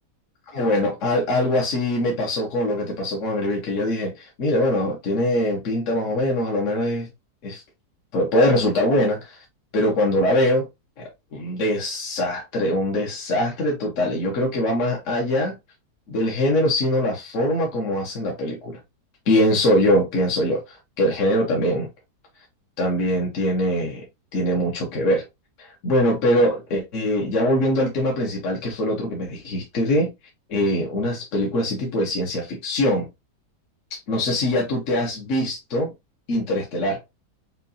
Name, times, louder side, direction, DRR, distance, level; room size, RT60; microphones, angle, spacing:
voice 1, 0.5-7.1 7.4-7.6 8.1-9.4 9.7-10.7 11.0-15.5 16.1-18.8 19.3-21.9 22.8-24.0 24.3-25.3 25.6-30.1 30.5-33.1 33.9-35.9 36.3-37.0, left 1 dB, 55° left, 1.1 m, -22 dB
5.6 x 2.3 x 2.6 m
omnidirectional pair, 1.8 m